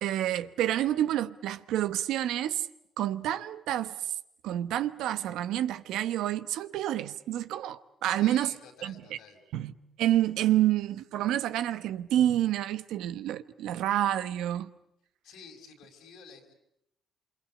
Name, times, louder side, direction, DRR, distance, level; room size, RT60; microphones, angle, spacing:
voice 1, 0.0-2.7 3.0-4.1 4.4-8.5 8.8-8.9 9.5-9.7 10.0-14.7, right 12 dB, 90° right, 1.0 m, -28 dB
voice 2, 8.1-9.4 15.2-16.5, left 5 dB, 85° left, 5.1 m, -50 dB
27.5 x 25.5 x 8.4 m
cardioid pair, 90°, 0 cm